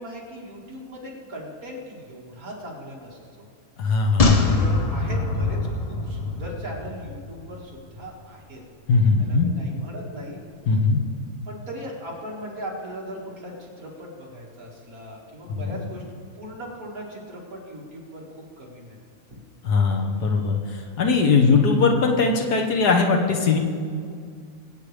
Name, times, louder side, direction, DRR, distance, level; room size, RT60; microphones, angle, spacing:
voice 1, 0.0-3.4 4.2-8.6 9.2-10.4 11.5-16.0 16.4-19.0 19.3-19.4, equal, 65° right, -3 dB, 2.6 m, -38 dB
voice 2, 3.8-4.4 8.9-9.5 10.7-11.0 15.5-15.8 19.6-23.6, left 4 dB, 90° left, 2 dB, 1.7 m, -20 dB
sound 1, 4.2-7.6 7.9-8.0, left 3 dB, 35° left, 0.6 m, -23 dB
22.5 x 8.6 x 3.4 m, 2.2 s
omnidirectional pair, 1.7 m